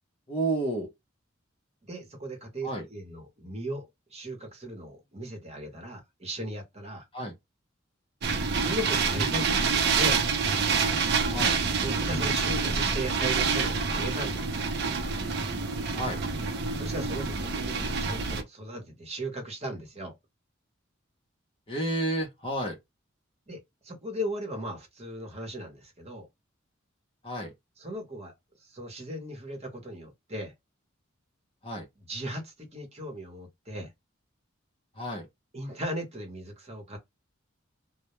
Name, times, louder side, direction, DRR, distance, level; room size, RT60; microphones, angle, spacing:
voice 1, 0.3-0.9 2.6-2.9 7.1-7.3 11.3-11.6 15.9-16.2 21.7-22.8 27.2-27.5 31.6-31.9 35.0-35.3, right 1 dB, 25° left, 0.6 m, -31 dB
voice 2, 1.8-7.1 8.5-10.2 11.7-14.6 16.8-20.1 23.5-26.3 27.8-28.3 28.6-30.5 32.0-33.9 35.5-37.0, right 1 dB, 30° right, 0.9 m, -37 dB
sound 1, 8.2-18.4, right 5 dB, 55° right, 0.5 m, -27 dB
2.2 x 2.0 x 2.9 m
head